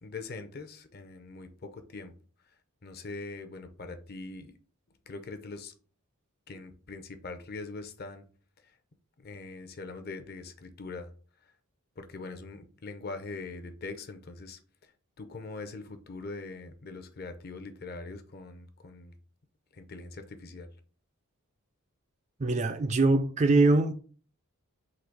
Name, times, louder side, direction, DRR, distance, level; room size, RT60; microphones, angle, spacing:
voice 1, 0.0-2.1 2.8-4.5 5.1-5.7 6.5-8.2 8.6-8.8 9.2-11.1 12.0-14.9 15.2-19.2 19.7-20.7, left 3 dB, 45° left, 0.6 m, -42 dB
voice 2, 22.4-23.9, right 2 dB, 30° right, 0.3 m, -23 dB
3.9 x 2.8 x 4.5 m
head